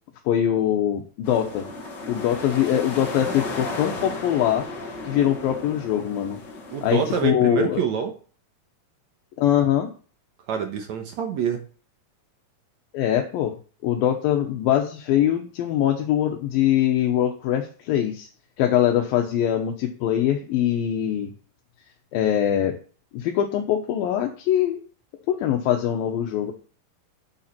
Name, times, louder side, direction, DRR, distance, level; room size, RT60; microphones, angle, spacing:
voice 1, 0.3-1.7 2.1-4.7 5.0-6.4 6.8-7.8 9.4-9.9 12.9-13.5 13.8-18.3 18.6-21.3 22.1-22.7 23.1-24.8 25.3-26.5, left 10 dB, 80° left, 2 dB, 2.8 m, -22 dB
sound 1, 1.2-7.2, left 3 dB, 45° left, 1.5 m, -34 dB
voice 2, 6.7-8.1 10.5-11.6, right 7 dB, 65° right, 5 dB, 2.0 m, -26 dB
10.5 x 6.9 x 4.4 m, 0.39 s
omnidirectional pair, 4.2 m